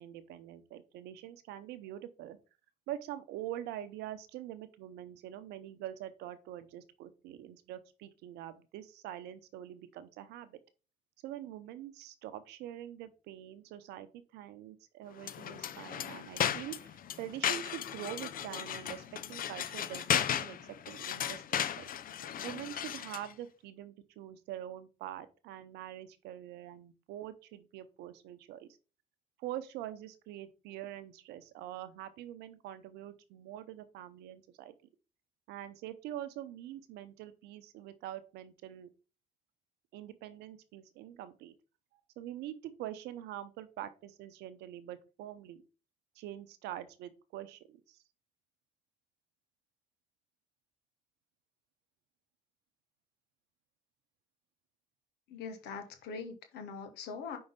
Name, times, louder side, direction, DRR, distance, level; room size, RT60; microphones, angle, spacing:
voice 1, 0.0-2.4 2.9-10.6 11.2-21.9 22.4-28.7 29.4-34.7 35.5-38.9 39.9-41.5 42.2-45.6 46.1-48.0, right 12 dB, 85° right, 13 dB, 0.7 m, -45 dB
sound 1, 15.2-23.3, left 10 dB, 60° left, 0.6 m, -35 dB
voice 2, 55.3-57.4, left 5 dB, 80° left, 6 dB, 1.3 m, -42 dB
5.4 x 3.9 x 5.2 m, 0.34 s
supercardioid pair, 60°, 17 cm